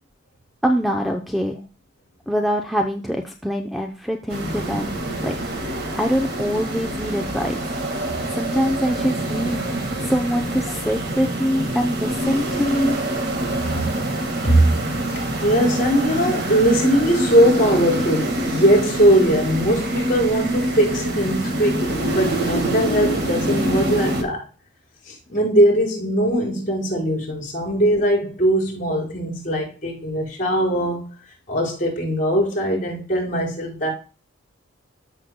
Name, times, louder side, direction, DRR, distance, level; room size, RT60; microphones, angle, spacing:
voice 1, 0.6-1.6 2.3-4.9 5.2-5.4 5.9-7.7 8.3-9.6 10.0-13.0, equal, ahead, 0.6 m, -24 dB
sound 1, 4.3-24.2, right 1 dB, 50° right, 1.8 m, -25 dB
voice 2, 15.1-24.4 25.0-31.1 31.5-33.9, right 1 dB, 40° left, 4.8 m, -20 dB
13.5 x 6.6 x 2.2 m
head